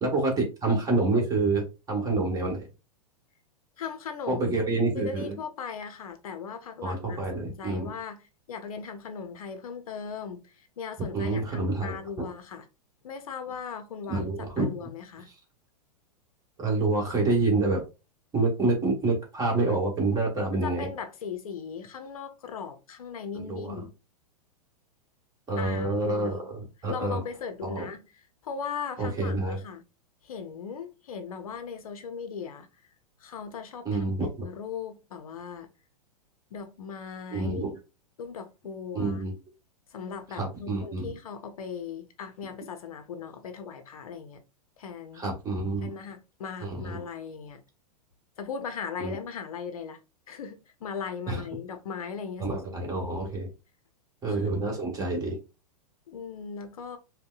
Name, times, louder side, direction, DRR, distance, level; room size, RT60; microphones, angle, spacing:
voice 1, 0.0-2.7 4.3-5.3 6.8-7.9 11.0-12.3 14.1-14.7 16.6-17.8 18.3-20.9 23.3-23.8 25.5-27.2 27.6-27.8 29.0-29.6 33.8-34.5 37.3-37.7 38.9-39.3 40.3-41.1 45.1-45.9 46.6-47.0 49.0-49.1 51.3-51.4 52.4-53.5 54.2-55.4, right 2 dB, 20° right, 1.3 m, -27 dB
voice 2, 3.8-12.7 13.0-15.3 20.5-23.9 25.6-26.4 26.9-28.0 28.4-29.8 30.2-32.9 33.2-34.0 34.4-35.7 36.5-37.7 38.2-39.2 39.9-44.4 44.8-45.2 45.8-47.6 48.4-50.0 50.3-53.0 54.3-54.5 56.1-57.0, left 6 dB, 65° left, 0.6 m, -38 dB
5.2 x 2.1 x 2.3 m
figure-of-eight pair, 100°, 20 cm